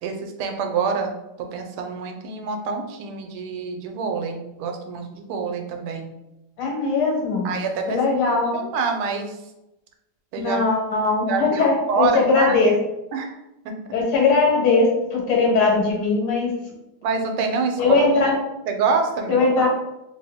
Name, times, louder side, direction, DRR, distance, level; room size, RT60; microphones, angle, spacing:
voice 1, 0.0-6.1 7.4-8.2 8.5-9.4 10.3-10.6 11.3-12.5 13.1-13.4 13.6-13.7 17.0-18.0 18.7-19.4, right 5 dB, 80° right, 4 dB, 1.4 m, -26 dB
voice 2, 6.6-7.5 7.9-8.5 10.4-12.7 13.9-16.6 17.8-18.3 19.3-19.7, left 3 dB, 75° left, -1 dB, 1.7 m, -20 dB
3.2 x 2.8 x 3.4 m, 0.93 s
omnidirectional pair, 2.4 m